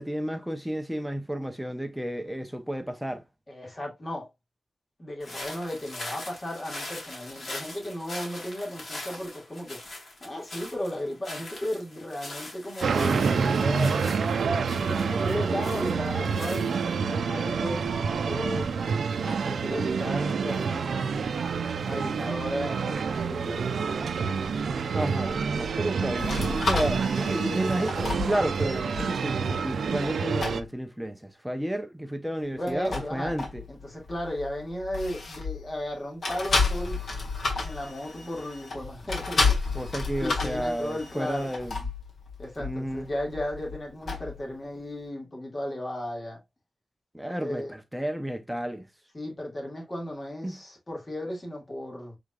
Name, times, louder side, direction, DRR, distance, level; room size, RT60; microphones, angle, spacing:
voice 1, 0.0-3.2 24.9-27.0 27.5-33.6 39.7-41.7 42.6-43.1 47.1-48.8 50.4-50.6, right 1 dB, 5° right, 0.7 m, -32 dB
voice 2, 3.5-4.3 5.0-9.8 10.2-14.0 14.8-18.7 19.2-21.2 21.8-23.7 27.2-27.6 32.6-33.4 33.7-37.0 37.6-39.6 40.2-41.5 42.4-46.4 47.4-47.7 49.1-52.2, left 1 dB, 30° left, 2.3 m, -35 dB
sound 1, 5.2-17.1, left 2 dB, 50° left, 2.4 m, -41 dB
sound 2, 12.8-30.6, right 5 dB, 90° right, 0.5 m, -28 dB
sound 3, 26.2-30.1 30.4-30.7 32.6-35.9 36.2-44.5, left 3 dB, 70° left, 1.8 m, -32 dB
5.0 x 3.7 x 2.4 m
wide cardioid pair, 95°, 0 cm